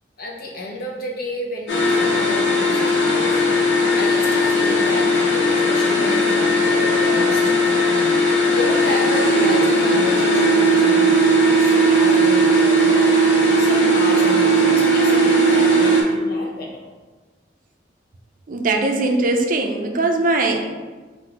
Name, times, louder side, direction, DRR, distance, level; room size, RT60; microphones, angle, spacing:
voice 1, 0.2-3.4 4.0-8.1 8.5-13.1 13.6-16.9, left 2 dB, 55° left, -1 dB, 0.8 m, -31 dB
sound 1, 1.7-16.0, right 1 dB, 85° left, 1.2 m, -17 dB
voice 2, 18.5-20.6, right 2 dB, 50° right, 4 dB, 0.5 m, -20 dB
3.9 x 2.6 x 4.4 m, 1.3 s
head